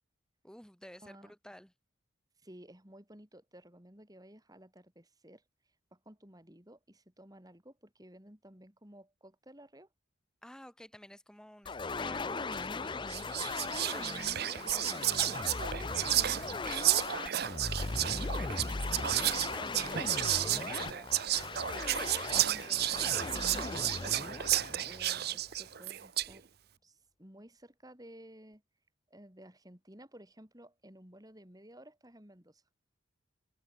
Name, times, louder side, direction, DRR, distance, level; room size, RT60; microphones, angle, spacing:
voice 1, 0.4-1.7 10.4-14.0 19.5-19.7 20.3-20.4 20.7-21.1 21.3-21.5 22.7-22.8, equal, 5° left, 1.1 m, -52 dB
voice 2, 2.4-5.4 5.9-9.9 13.5-18.5 18.7-21.0 21.8-24.4 24.8-26.5 26.8-28.6 29.1-32.6, right 1 dB, 20° right, 3.5 m, -55 dB
sound 1, 11.6-25.5, left 3 dB, 25° left, 0.5 m, -38 dB
Whispering, 12.5-12.7 13.1-26.4, right 13 dB, 50° right, 0.6 m, -32 dB
open air
head